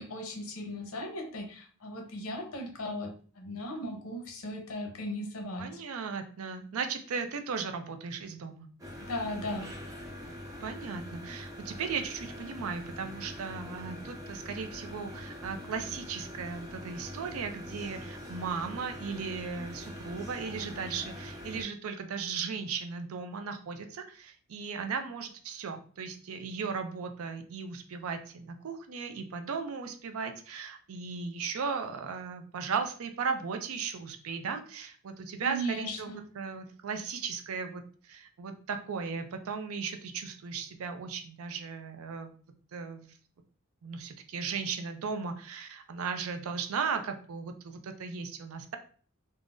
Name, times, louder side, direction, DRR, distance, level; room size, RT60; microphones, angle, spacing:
voice 1, 0.0-5.8 9.0-9.7 35.4-36.2, equal, 90° left, 2 dB, 0.7 m, -37 dB
voice 2, 5.6-8.7 10.6-36.1 36.4-42.3 42.7-43.1 43.8-48.8, right 5 dB, 80° right, 7 dB, 0.4 m, -36 dB
sound 1, 8.8-21.6, left 1 dB, 15° right, 0.6 m, -43 dB
3.6 x 2.0 x 2.4 m, 0.43 s
head